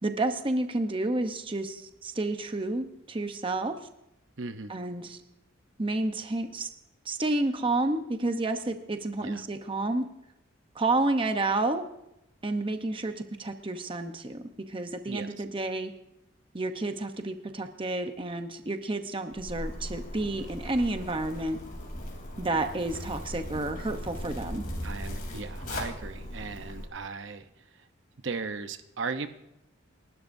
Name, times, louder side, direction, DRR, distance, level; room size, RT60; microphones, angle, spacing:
voice 1, 0.0-3.7 4.7-5.2 5.8-6.7 7.0-10.0 10.7-11.8 12.4-15.9 16.5-21.6 22.4-24.6, right 2 dB, 25° right, 6 dB, 0.8 m, -30 dB
voice 2, 4.4-4.7 9.2-9.4 15.1-15.4 24.8-27.9 28.2-29.3, right 4 dB, 60° right, 8 dB, 0.8 m, -37 dB
Zipper (clothing), 19.3-26.8, equal, 40° left, 3.4 m, -38 dB
29.0 x 12.5 x 2.7 m, 0.84 s
head